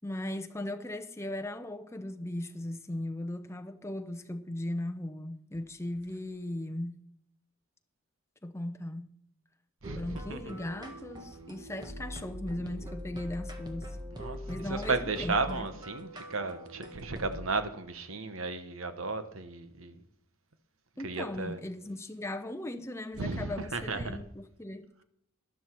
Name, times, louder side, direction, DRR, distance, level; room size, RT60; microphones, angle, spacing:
voice 1, 0.0-7.0 8.4-9.1 10.0-14.0 14.5-15.7 21.0-24.9, left 1 dB, 15° left, 0.8 m, -38 dB
sound 1, 9.8-17.5, equal, 20° right, 1.4 m, -42 dB
voice 2, 9.8-10.5 14.1-14.4 14.7-20.0 21.0-21.6 23.2-24.2, right 3 dB, 70° right, 1.2 m, -34 dB
12.5 x 12.0 x 4.6 m
head